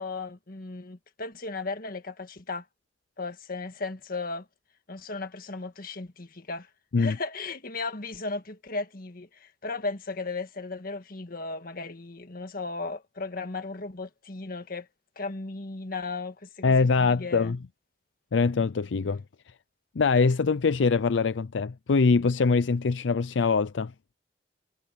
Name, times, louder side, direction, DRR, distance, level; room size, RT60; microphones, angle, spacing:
voice 1, 0.0-2.7 3.2-4.5 4.9-6.7 7.0-14.9 15.2-17.6, left 3 dB, 55° left, 1.7 m, -36 dB
voice 2, 16.6-17.6 18.3-19.2 20.0-23.9, left 4 dB, 85° left, 0.5 m, -23 dB
head